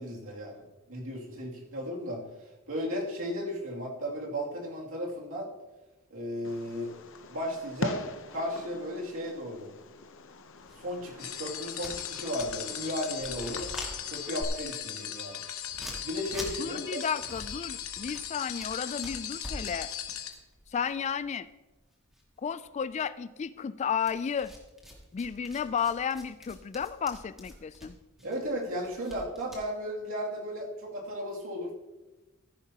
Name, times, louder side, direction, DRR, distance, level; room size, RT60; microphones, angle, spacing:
voice 1, 0.0-2.2 2.7-5.5 6.1-6.9 7.3-8.0 8.3-9.7 10.8-13.7 14.1-15.4 16.0-17.0 28.2-31.7, equal, 70° right, -2 dB, 2.7 m, -35 dB
Fireworks, 6.4-14.4, left 3 dB, 65° left, 0.8 m, -43 dB
sound 1, 10.6-12.8 13.1-21.9 22.1-23.0 24.0-29.7, equal, ahead, 2.2 m, -46 dB
sound 2, 11.2-20.3, left 10 dB, 85° left, 1.1 m, -38 dB
voice 2, 16.6-19.9 20.7-21.5 22.4-24.5 25.1-28.0, left 7 dB, 30° left, 16 dB, 0.3 m, -33 dB
15.5 x 10.5 x 2.9 m, 1.1 s
head